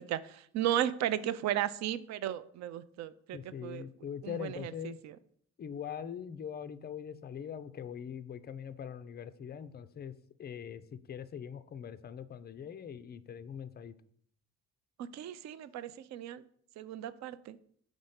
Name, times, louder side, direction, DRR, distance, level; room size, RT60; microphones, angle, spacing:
voice 1, 0.0-3.8 4.2-5.2 15.1-16.4 16.8-17.6, right 11 dB, 40° right, 15 dB, 0.5 m, -35 dB
voice 2, 3.3-5.0 5.6-10.1 10.4-14.0, left 8 dB, 25° left, 13 dB, 0.4 m, -42 dB
5.1 x 3.6 x 5.6 m, 0.62 s
hypercardioid pair, 50°, 44 cm